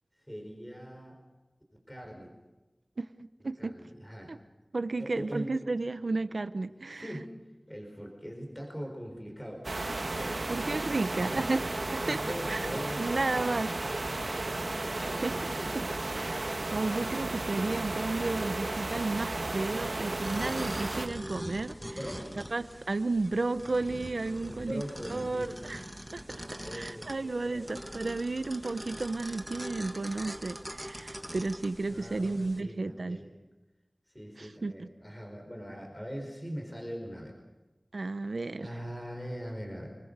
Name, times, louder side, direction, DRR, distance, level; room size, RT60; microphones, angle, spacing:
voice 1, 0.2-1.2 1.9-2.3 3.6-4.4 5.0-5.5 6.9-7.4 7.7-10.4 11.1-11.5 12.0-15.9 21.9-22.4 24.4-25.5 26.6-27.7 31.9-33.3 34.1-37.3 38.6-40.0, equal, 15° left, 1 dB, 4.7 m, -42 dB
voice 2, 3.4-3.8 4.3-4.4 4.7-7.1 10.5-11.7 11.9-12.2 12.5-12.7 13.0-13.7 15.0-15.8 16.1-22.0 22.5-24.8 25.1-25.8 26.1-26.2 26.7-33.2 34.4-34.9 37.9-38.7, right 3 dB, 85° right, 11 dB, 0.8 m, -33 dB
sound 1, 9.6-21.1, right 2 dB, 65° right, 1.4 m, -34 dB
sound 2, 20.2-32.6, equal, 5° right, 1.6 m, -42 dB
28.5 x 20.5 x 6.8 m, 1.1 s
wide cardioid pair, 60°, 0 cm